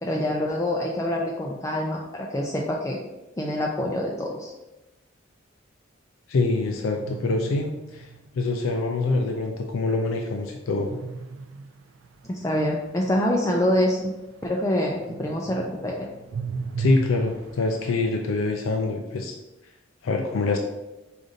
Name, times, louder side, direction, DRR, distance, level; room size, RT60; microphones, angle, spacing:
voice 1, 0.0-3.0 3.4-4.5 12.3-14.1 14.4-16.0, left 1 dB, 15° left, -1 dB, 0.3 m, -25 dB
voice 2, 6.3-8.1 8.4-10.9 16.8-19.4 20.0-20.6, left 3 dB, 90° left, 3 dB, 0.4 m, -25 dB
sound 1, 7.0-8.7 10.9-14.7 15.0-17.9, right 5 dB, 75° right, 0.3 m, -37 dB
5.0 x 2.5 x 3.8 m, 1.0 s
head